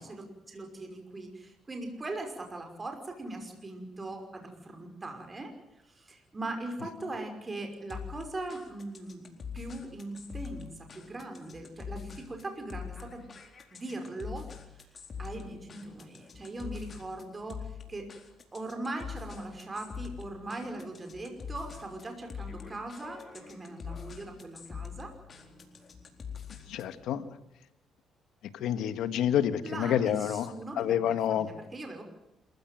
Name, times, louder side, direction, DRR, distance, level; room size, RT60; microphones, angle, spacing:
voice 1, 0.0-5.5 5.8-9.2 9.5-13.2 13.7-14.5 15.2-18.1 18.5-25.1 29.6-32.0, right 2 dB, 25° right, 4 dB, 5.5 m, -40 dB
sound 1, 7.9-27.0, left 7 dB, 40° left, 4.1 m, -44 dB
voice 2, 26.7-27.2 28.5-31.5, left 10 dB, 85° left, 12 dB, 1.6 m, -28 dB
27.0 x 15.5 x 9.3 m, 0.89 s
cardioid pair, 90°, 0 cm